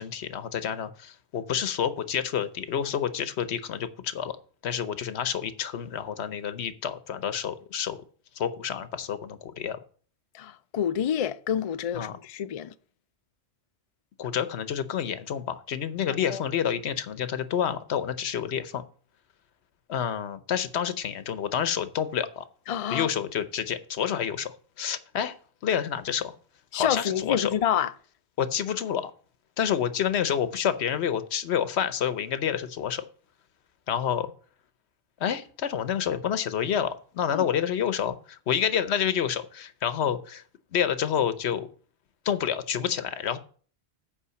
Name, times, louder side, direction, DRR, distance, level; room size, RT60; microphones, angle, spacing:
voice 1, 0.0-4.4 4.6-8.0 8.4-9.8 11.9-12.2 14.2-18.8 19.9-22.4 22.9-25.3 25.6-26.3 26.7-27.5 28.4-29.1 29.6-33.1 33.9-34.3 35.2-40.4 40.7-41.7 42.2-43.4, left 8 dB, 75° left, 1.0 m, -28 dB
voice 2, 10.3-12.7 16.3-16.4 22.7-23.1 26.7-27.9 37.3-37.5, left 9 dB, 55° left, 0.4 m, -28 dB
8.5 x 5.2 x 6.9 m
omnidirectional pair, 1.1 m